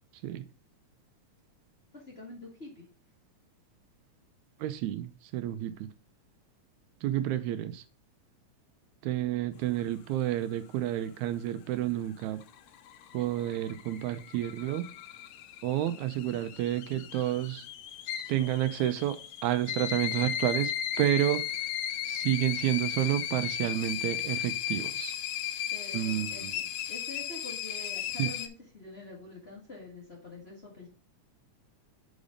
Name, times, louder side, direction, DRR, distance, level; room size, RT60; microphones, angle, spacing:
voice 1, 1.9-2.8 25.7-30.9, left 2 dB, 25° left, -3 dB, 1.5 m, -46 dB
voice 2, 4.6-5.7 7.0-7.8 9.0-12.4 13.1-14.9 15.6-17.6 18.3-19.2 19.4-20.7 21.0-21.4 22.1-25.2 25.9-26.5 28.2-28.3, right 13 dB, 80° right, 10 dB, 1.9 m, -30 dB
sound 1, 12.2-28.5, left 10 dB, 80° left, 1.4 m, -36 dB
5.2 x 5.1 x 4.9 m, 0.34 s
omnidirectional pair, 3.4 m